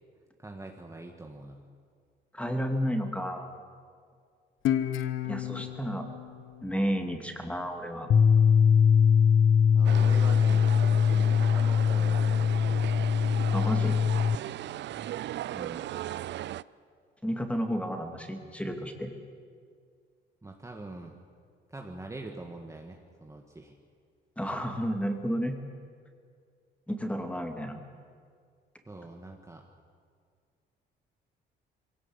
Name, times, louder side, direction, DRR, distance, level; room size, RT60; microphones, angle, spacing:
voice 1, 0.4-1.6 9.7-12.9 15.5-15.9 20.4-21.2 21.7-23.7 28.9-29.6, right 2 dB, 15° right, 2 dB, 1.7 m, -44 dB
voice 2, 2.3-3.5 5.2-6.1 6.6-8.1 13.5-14.0 17.2-19.1 24.4-25.6 26.9-27.8, equal, 5° left, 4 dB, 2.5 m, -31 dB
Guitar, 4.6-7.9, left 11 dB, 85° left, 1.0 m, -33 dB
sound 1, 8.1-14.4, left 7 dB, 55° left, 0.8 m, -22 dB
sound 2, 9.8-16.6, right 13 dB, 65° right, 0.4 m, -37 dB
22.0 x 17.5 x 8.1 m, 2.1 s
cardioid pair, 90°, 20 cm